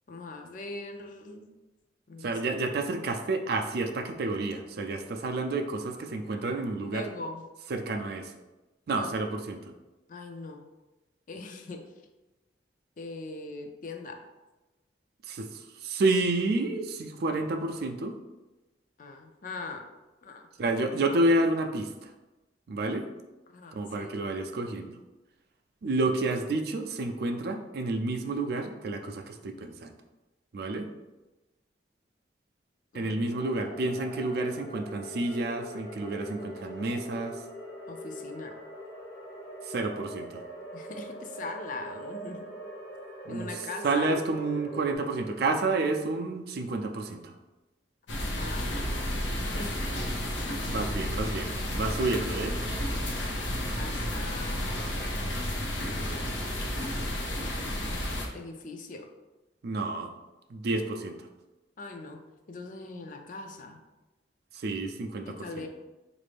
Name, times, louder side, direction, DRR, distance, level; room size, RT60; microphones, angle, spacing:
voice 1, 0.1-1.5 2.1-2.4 6.9-7.5 8.9-9.1 10.1-10.7 11.3-11.9 13.0-14.3 19.0-19.9 20.2-20.5 23.5-24.1 32.9-33.2 37.9-38.6 40.7-42.5 43.3-44.1 48.4-48.8 49.5-49.8 50.8-50.9 51.3-51.5 53.7-55.1 55.9-56.6 58.3-59.1 61.8-63.8 65.3-65.7, left 3 dB, 45° left, 5 dB, 0.4 m, -41 dB
voice 2, 2.2-7.1 7.7-8.3 8.9-9.6 15.3-18.2 20.6-22.1 22.7-23.1 23.7-24.9 25.8-29.9 30.5-30.9 32.9-37.4 39.6-40.4 43.3-43.5 43.8-47.3 50.7-52.6 59.6-60.1 60.5-61.2 64.5-65.7, right 2 dB, 60° right, 5 dB, 0.4 m, -30 dB
sound 1, 33.3-45.0, equal, 65° left, 1.1 m, -42 dB
sound 2, 48.1-58.3, left 1 dB, 90° left, 0.7 m, -32 dB
4.1 x 2.6 x 3.3 m, 1.1 s
head